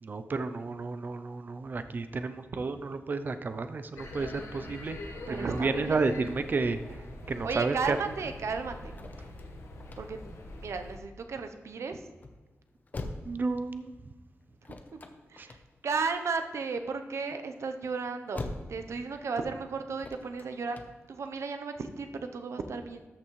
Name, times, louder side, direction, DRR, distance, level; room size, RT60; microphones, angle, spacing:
voice 1, 0.0-5.0 5.3-6.8 7.3-8.0 13.2-13.9 15.4-15.5, right 4 dB, 45° right, 10 dB, 0.5 m, -31 dB
sound 1, 4.0-11.0, left 1 dB, 85° left, 1.3 m, -44 dB
voice 2, 5.3-6.0 7.4-8.9 10.0-10.2 10.6-12.0 14.9-15.0 15.3-18.4 18.7-20.8 21.1-23.1, right 4 dB, 85° right, 7 dB, 0.7 m, -34 dB
sound 2, 8.8-21.3, left 2 dB, 35° left, 0.7 m, -45 dB
13.5 x 5.9 x 3.1 m, 1.3 s
wide cardioid pair, 175°, 5 cm